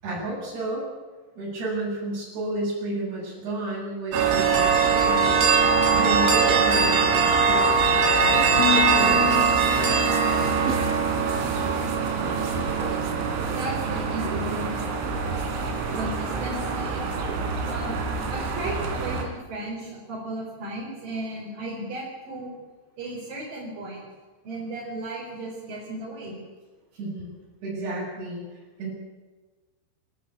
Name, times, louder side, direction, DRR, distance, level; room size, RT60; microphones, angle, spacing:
voice 1, 0.0-0.9 1.4-5.4 5.9-7.9 8.2-9.3 12.6-12.7 26.9-27.3 27.6-28.9, right 2 dB, 65° right, -7 dB, 8.7 m, -32 dB
sound 1, 4.1-19.2, right 5 dB, 80° right, 5.3 m, -22 dB
Harp, 8.6-12.7 13.0-13.5 14.0-14.4, left 15 dB, 80° left, 4.7 m, -34 dB
voice 2, 13.4-14.8 15.9-17.1 17.7-22.5 23.0-24.0 24.4-26.4, right 1 dB, 45° right, -5 dB, 6.2 m, -35 dB
29.0 x 12.0 x 8.4 m, 1.3 s
omnidirectional pair, 5.5 m